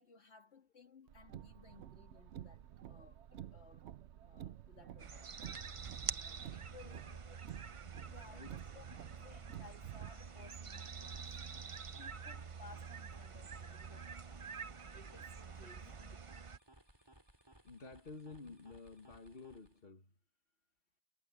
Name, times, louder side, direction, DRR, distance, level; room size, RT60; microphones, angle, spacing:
voice 1, 0.0-3.9 4.2-5.3 6.5-7.2 8.1-11.6 12.0-14.1 14.9-16.2, left 4 dB, 75° left, 2.7 m, -60 dB
Car, 1.1-10.1, right 11 dB, 85° right, 1.0 m, -51 dB
sound 1, 5.0-16.6, right 6 dB, 35° right, 0.6 m, -47 dB
voice 2, 6.8-7.4 8.3-8.6 17.6-20.1, left 3 dB, 60° left, 2.1 m, -52 dB
sound 2, 10.0-19.9, right 1 dB, 20° right, 5.0 m, -64 dB
omnidirectional pair, 1.1 m